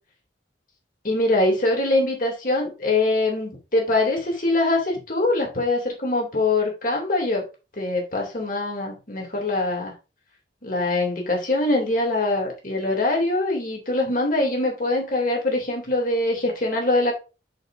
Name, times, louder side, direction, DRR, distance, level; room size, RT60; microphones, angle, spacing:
voice 1, 1.0-7.4 7.8-9.9 10.6-17.1, left 2 dB, 45° left, 0 dB, 3.3 m, -23 dB
6.9 x 6.5 x 3.9 m, 0.30 s
head